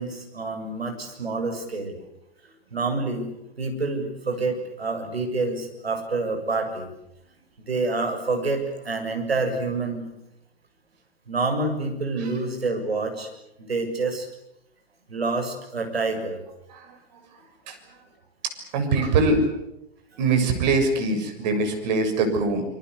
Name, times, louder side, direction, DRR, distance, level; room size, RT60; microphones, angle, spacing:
voice 1, 0.0-2.0 2.7-3.3 3.6-6.9 7.7-10.0 11.3-13.3 13.7-14.3 15.1-16.4, right 3 dB, 75° right, 4 dB, 7.3 m, -27 dB
voice 2, 18.7-19.4 20.2-22.6, right 3 dB, 45° right, 5 dB, 7.0 m, -23 dB
26.0 x 24.5 x 8.3 m, 0.85 s
figure-of-eight pair, 110°, 31 cm